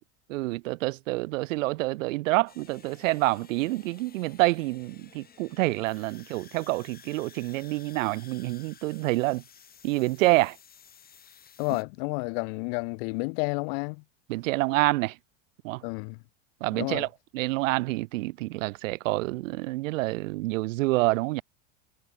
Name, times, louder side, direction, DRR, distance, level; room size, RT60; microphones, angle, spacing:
voice 1, 0.3-9.4 9.8-10.6 14.3-15.1 15.6-15.8 16.6-17.1 17.3-21.4, right 20 dB, 80° right, 0.7 m, -27 dB
sound 1, 2.5-11.8, left 8 dB, 25° left, 3.8 m, -54 dB
voice 2, 11.6-14.0 15.8-16.2 16.7-17.1, left 39 dB, 55° left, 0.6 m, -31 dB
supercardioid pair, 135°, 38 cm